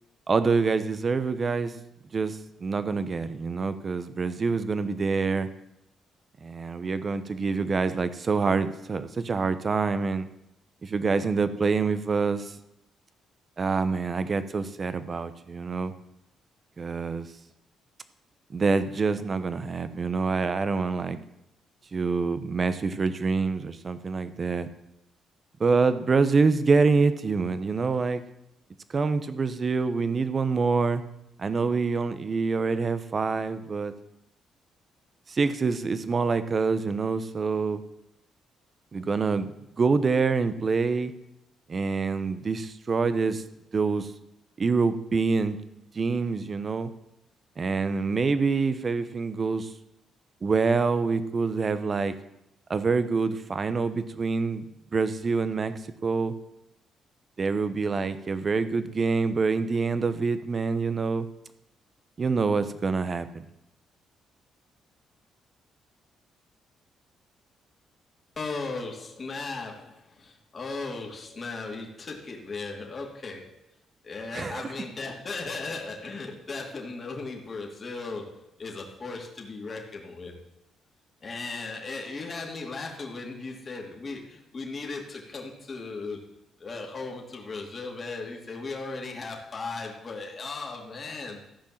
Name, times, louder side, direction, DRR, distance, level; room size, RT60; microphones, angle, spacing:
voice 1, 0.3-1.7 2.1-5.5 6.4-10.3 10.8-12.5 13.6-15.9 16.8-17.3 18.5-21.2 21.9-24.7 25.6-28.2 28.9-31.0 31.4-33.9 35.3-37.8 38.9-39.5 39.8-41.1 41.7-43.4 43.7-44.1 44.6-45.6 45.9-46.9 47.6-49.7 50.4-52.1 52.7-54.6 54.9-55.7 56.0-56.3 57.4-61.3 62.2-63.4 74.3-74.7, right 4 dB, 40° right, 12 dB, 0.9 m, -26 dB
voice 2, 68.4-73.5 74.0-80.3 81.2-86.2 86.6-91.4, left 3 dB, 35° left, 0 dB, 2.6 m, -37 dB
14.5 x 5.3 x 7.4 m, 0.85 s
cardioid pair, 90°, 0 cm